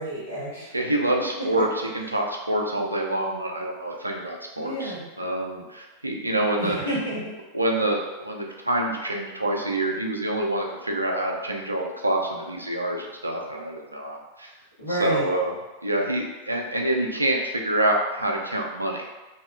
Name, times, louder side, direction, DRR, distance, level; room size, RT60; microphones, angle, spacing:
voice 1, 0.0-0.7 4.6-5.1 6.6-7.3 14.8-15.3, right 1 dB, 75° left, -7 dB, 1.0 m, -30 dB
voice 2, 0.7-6.8 7.5-14.5 14.9-15.5 15.8-19.0, right 1 dB, 85° right, 1 dB, 0.3 m, -26 dB
2.7 x 2.2 x 2.3 m, 1.1 s
figure-of-eight pair, 90°, 0 cm